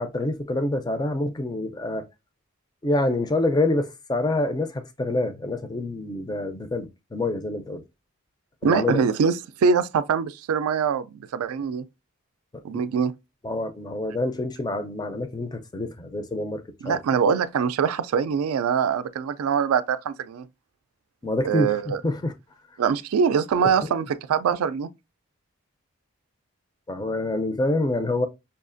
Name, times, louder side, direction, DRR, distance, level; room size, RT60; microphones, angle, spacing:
voice 1, 0.0-2.1 2.8-7.8 8.6-9.1 12.7-12.8 13.4-17.0 21.2-22.3 23.6-23.7 26.9-28.3, left 2 dB, 20° left, 0.4 m, -27 dB
voice 2, 8.6-11.1 11.3-11.8 12.6-13.1 16.8-20.4 21.5-22.0 22.8-24.9, right 6 dB, 85° right, 0.3 m, -23 dB
5.5 x 2.4 x 2.5 m
head